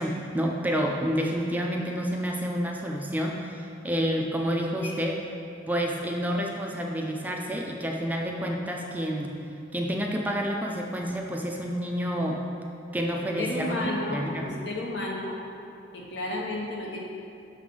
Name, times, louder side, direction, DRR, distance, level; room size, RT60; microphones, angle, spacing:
voice 1, 0.0-5.2 5.7-9.3 9.7-12.4 12.9-13.8 14.1-14.6, equal, 10° right, 0 dB, 0.4 m, -29 dB
voice 2, 13.4-15.4 15.9-17.0, left 1 dB, 75° left, -2 dB, 1.0 m, -32 dB
6.6 x 3.3 x 5.2 m, 2.6 s
head